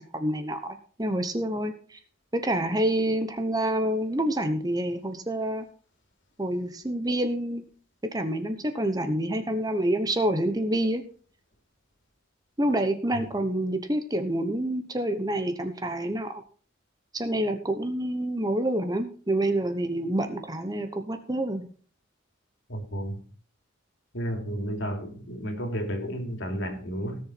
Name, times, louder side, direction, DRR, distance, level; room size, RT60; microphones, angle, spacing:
voice 1, 0.0-2.0 2.3-5.7 6.4-7.7 8.1-11.0 12.6-16.4 17.1-21.7, right 1 dB, 20° right, 1.0 m, -27 dB
voice 2, 22.7-23.1 24.1-27.2, equal, 65° left, 2.9 m, -32 dB
17.5 x 7.0 x 4.4 m
head